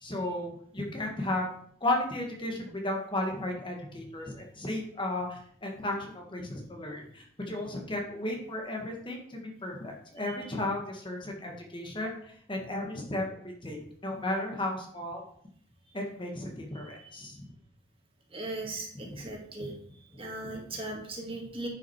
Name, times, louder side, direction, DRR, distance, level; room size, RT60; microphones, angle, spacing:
voice 1, 0.0-1.5 1.8-15.2 15.9-17.5 18.6-19.3 20.4-20.5, left 1 dB, 25° left, 1 dB, 1.7 m, -34 dB
voice 2, 18.3-19.7 20.2-21.7, right 2 dB, 30° right, 0 dB, 2.2 m, -38 dB
10.5 x 5.9 x 4.7 m, 0.64 s
head